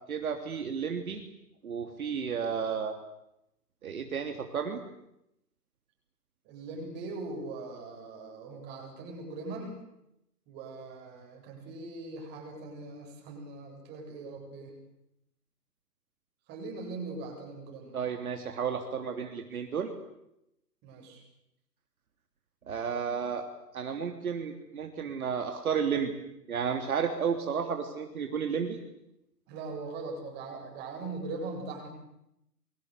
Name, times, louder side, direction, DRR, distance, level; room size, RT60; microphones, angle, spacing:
voice 1, 0.1-1.2 1.6-2.9 3.8-4.8 17.9-19.9 22.7-23.4 23.7-26.1 26.5-28.8, right 6 dB, 55° right, 5 dB, 3.4 m, -32 dB
voice 2, 6.4-9.8 10.5-14.7 16.5-18.2 20.8-21.2 29.5-31.9, right 3 dB, 20° right, 2 dB, 8.0 m, -41 dB
28.5 x 24.0 x 8.3 m, 0.82 s
hypercardioid pair, 150°, 49 cm